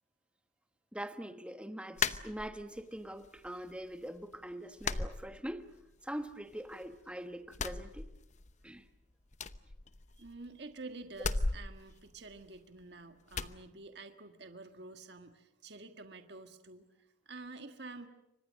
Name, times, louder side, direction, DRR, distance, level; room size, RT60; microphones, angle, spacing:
voice 1, 0.9-5.7 6.0-8.1 8.6-8.9, right 1 dB, 5° right, 1.2 m, -43 dB
sound 1, 2.0-2.9 3.2-3.9 4.2-4.4 4.8-5.9 6.2-7.0 7.5-8.6 8.9-9.0 9.3-10.5 11.1-12.8 13.3-13.6, left 4 dB, 35° left, 0.8 m, -37 dB
voice 2, 10.2-18.1, right 3 dB, 55° right, 1.6 m, -49 dB
29.0 x 25.5 x 6.5 m
head